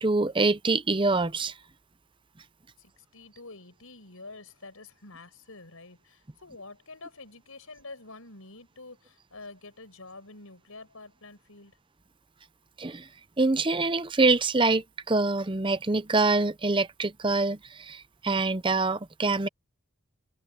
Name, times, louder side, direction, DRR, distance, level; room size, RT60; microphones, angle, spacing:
voice 1, 0.0-1.5 12.8-13.1 13.4-19.5, right 3 dB, 20° right, 0.7 m, -25 dB
voice 2, 2.8-11.8, left 3 dB, 75° left, 5.5 m, -47 dB
head